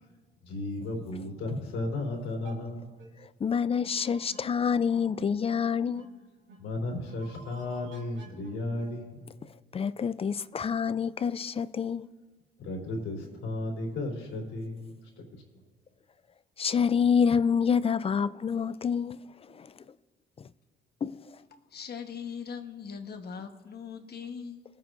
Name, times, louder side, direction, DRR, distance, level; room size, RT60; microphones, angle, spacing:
voice 1, 0.4-2.8 6.6-9.2 12.6-15.4, left 2 dB, 80° left, 3.5 m, -34 dB
sound 1, 2.4-2.6 3.0-3.1 3.8-5.3 5.5-5.6 5.9-6.1 6.5-6.6 7.1-8.9, right 3 dB, 75° right, 2.0 m, -51 dB
voice 2, 3.4-6.1 9.7-12.1 16.6-19.2 19.5-19.7 20.4-20.5 21.0-21.2, left 6 dB, 30° left, 0.4 m, -27 dB
voice 3, 21.7-24.6, left 6 dB, 55° left, 1.2 m, -40 dB
21.0 x 9.1 x 2.6 m
cardioid pair, 90°, 20 cm